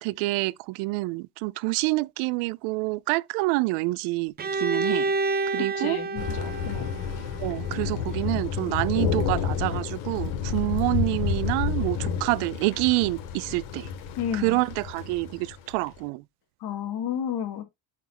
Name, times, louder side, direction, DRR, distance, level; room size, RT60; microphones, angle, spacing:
voice 1, 0.0-5.1 5.5-6.0 7.4-13.9 14.3-16.2, right 23 dB, 80° right, 0.6 m, -27 dB
Bowed string instrument, 4.4-8.2, right 3 dB, 20° right, 0.5 m, -29 dB
voice 2, 5.6-6.9 14.2-14.6 16.6-17.6, left 9 dB, 50° left, 2.3 m, -32 dB
Thunder, 6.2-15.9, left 6 dB, 80° left, 2.7 m, -30 dB
8.2 x 5.9 x 2.9 m
cardioid pair, 160°, 49 cm